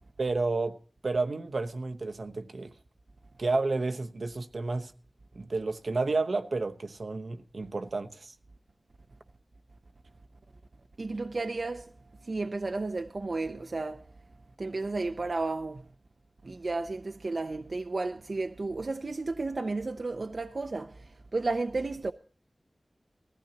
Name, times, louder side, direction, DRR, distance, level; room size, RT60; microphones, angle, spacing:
voice 1, 0.2-0.8 1.0-2.7 3.4-4.9 5.3-8.4, right 3 dB, 80° right, 0.9 m, -31 dB
voice 2, 11.0-11.9 12.2-14.1 14.6-15.9 16.4-22.1, right 3 dB, 65° right, 0.5 m, -33 dB
20.0 x 15.0 x 2.8 m
wide cardioid pair, 75°, 0 cm